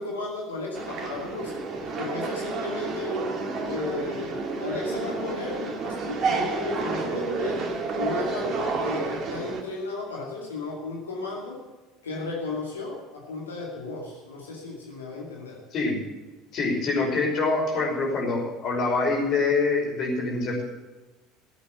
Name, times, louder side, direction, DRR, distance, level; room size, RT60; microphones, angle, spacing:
voice 1, 0.0-1.6 2.0-3.2 3.6-11.6 12.0-15.6, left 3 dB, 80° left, -2 dB, 2.5 m, -34 dB
sound 1, 0.7-9.6, right 4 dB, 40° right, 2.3 m, -30 dB
voice 2, 16.5-20.6, left 3 dB, 45° left, -1 dB, 5.5 m, -25 dB
15.0 x 8.4 x 7.8 m, 1.2 s
figure-of-eight pair, 65°, 0 cm